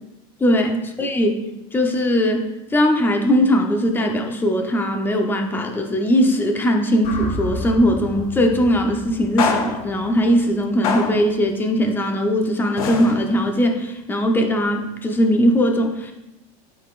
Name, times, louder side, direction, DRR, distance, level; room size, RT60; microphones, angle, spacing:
voice 1, 0.4-1.3 1.7-2.4 2.7-16.1, equal, 10° left, 3 dB, 0.8 m, -19 dB
sound 1, 7.0-11.3, left 2 dB, 50° left, 1.2 m, -33 dB
sound 2, 8.1-8.3 9.4-10.0 10.8-11.4 12.8-13.6, left 5 dB, 85° left, 1.0 m, -25 dB
12.0 x 4.1 x 2.5 m, 0.94 s
supercardioid pair, 135°, 18 cm